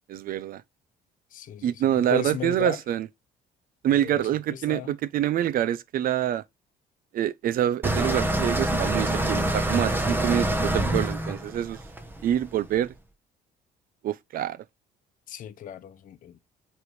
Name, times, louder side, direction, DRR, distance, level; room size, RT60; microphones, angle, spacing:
voice 1, 0.1-0.6 1.6-3.1 3.8-6.4 7.1-11.8 12.2-12.9 14.0-14.6, right 11 dB, 60° right, 0.7 m, -26 dB
voice 2, 1.3-2.8 3.9-4.9 15.3-16.4, left 10 dB, 50° left, 0.9 m, -36 dB
sound 1, 7.8-12.8, right 1 dB, 10° right, 1.1 m, -26 dB
8.0 x 3.5 x 4.7 m
cardioid pair, 110°, 17 cm